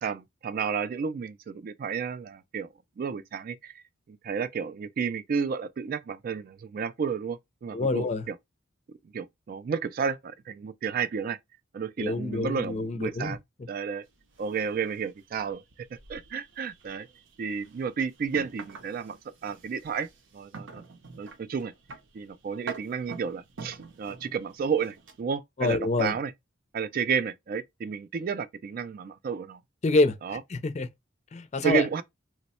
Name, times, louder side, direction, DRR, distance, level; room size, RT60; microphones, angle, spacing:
voice 1, 0.0-2.7 3.0-8.4 9.1-11.4 11.7-13.4 13.7-14.1 14.4-15.6 15.9-17.1 17.4-20.1 20.3-20.8 21.1-21.7 22.1-26.3 26.7-29.6 30.2-30.4 31.6-32.0, right 6 dB, 50° right, 0.3 m, -31 dB
voice 2, 7.7-8.2 12.0-13.4 25.6-26.1 29.8-30.2 30.5-30.9 31.3-31.8, left 2 dB, 35° left, 0.5 m, -26 dB
sound 1, 14.1-25.2, right 5 dB, 75° right, 0.7 m, -47 dB
3.0 x 2.1 x 4.1 m
head